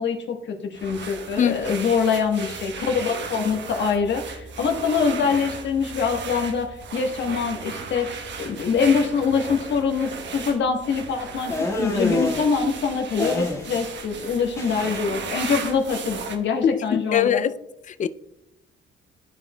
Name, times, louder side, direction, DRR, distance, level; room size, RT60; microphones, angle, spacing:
voice 1, 0.0-17.5, left 5 dB, 65° left, 1.2 m, -24 dB
sound 1, 0.7-16.4, right 5 dB, 65° right, 1.1 m, -36 dB
voice 2, 1.4-1.8 16.7-17.5 17.9-18.1, left 9 dB, 40° left, 0.4 m, -23 dB
sound 2, 11.5-12.5 13.2-13.9 14.2-15.0, left 1 dB, 15° left, 1.5 m, -27 dB
12.0 x 4.8 x 2.2 m
cardioid pair, 90°, 20 cm